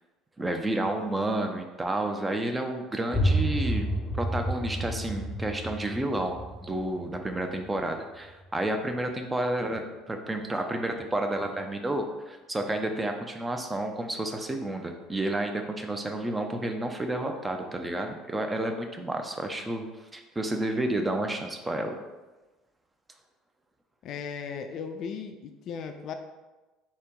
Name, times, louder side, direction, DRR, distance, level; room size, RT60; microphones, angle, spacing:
voice 1, 0.4-3.9 4.1-19.9 20.1-22.0, right 1 dB, 15° right, 4 dB, 0.6 m, -30 dB
sound 1, 3.1-8.7, equal, 15° left, 0.8 m, -30 dB
voice 2, 24.0-26.1, left 6 dB, 50° left, 7 dB, 0.4 m, -36 dB
4.2 x 3.0 x 3.7 m, 1.2 s
figure-of-eight pair, 60°, 0 cm